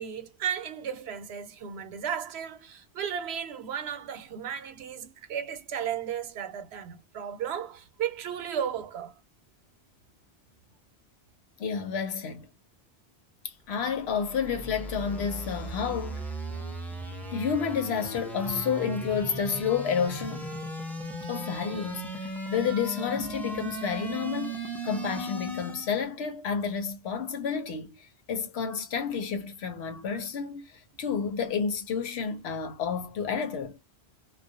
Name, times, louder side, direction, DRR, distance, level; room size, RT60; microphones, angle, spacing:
voice 1, 0.0-9.1, right 8 dB, 85° right, 0.9 m, -34 dB
voice 2, 11.6-12.5 13.7-16.3 17.3-20.5 21.3-28.0 28.3-33.8, left 6 dB, 80° left, 1.0 m, -30 dB
sound 1, 13.8-26.0, right 1 dB, ahead, 0.4 m, -37 dB
2.3 x 2.1 x 2.6 m
omnidirectional pair, 1.1 m